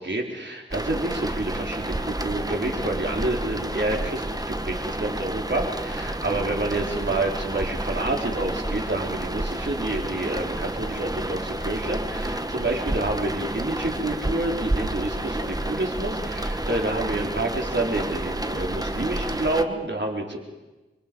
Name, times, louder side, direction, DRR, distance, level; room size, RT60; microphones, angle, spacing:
voice 1, 0.0-20.4, right 2 dB, 60° right, 0 dB, 4.1 m, -28 dB
sound 1, 0.7-19.6, right 1 dB, 20° right, 1.4 m, -30 dB
29.5 x 24.0 x 5.4 m, 1.1 s
wide cardioid pair, 55°, 21 cm